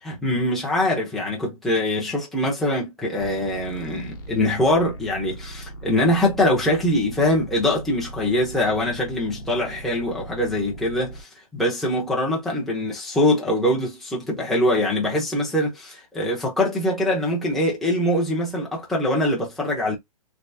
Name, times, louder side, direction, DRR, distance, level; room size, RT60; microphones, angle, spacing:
voice 1, 0.0-20.0, left 1 dB, ahead, 0.7 m, -23 dB
sound 1, 3.2-11.2, right 1 dB, 35° left, 1.0 m, -39 dB
3.4 x 2.8 x 2.7 m
hypercardioid pair, 170°, 19 cm